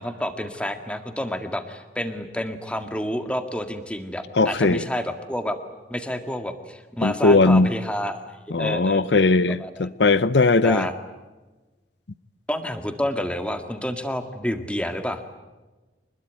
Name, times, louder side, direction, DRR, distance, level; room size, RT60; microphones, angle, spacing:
voice 1, 0.0-5.6 5.9-8.2 8.6-9.3 9.6-9.9 10.6-10.9 12.5-15.2, equal, 5° left, 1.9 m, -29 dB
voice 2, 4.3-4.8 7.0-7.7 8.5-10.9, left 3 dB, 75° left, 0.7 m, -19 dB
25.0 x 21.0 x 9.2 m
head